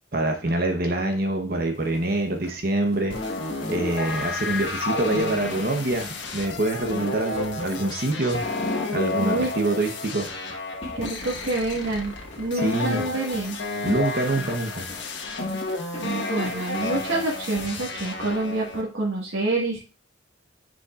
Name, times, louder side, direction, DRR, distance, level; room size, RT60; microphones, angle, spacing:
voice 1, 0.1-3.2 3.7-8.4 8.9-10.3 12.5-13.1 13.8-14.9, right 2 dB, 50° right, 4 dB, 0.9 m, -25 dB
sound 1, 1.6-8.3 10.2-10.5 10.8-17.1 17.5-18.5, left 1 dB, 35° left, 1.8 m, -45 dB
sound 2, 3.1-18.8, left 2 dB, 65° left, 1.3 m, -31 dB
voice 2, 9.2-9.5 10.9-13.6 16.0-19.8, right 2 dB, 80° right, -4 dB, 1.7 m, -27 dB
9.7 x 5.2 x 2.5 m, 0.34 s
head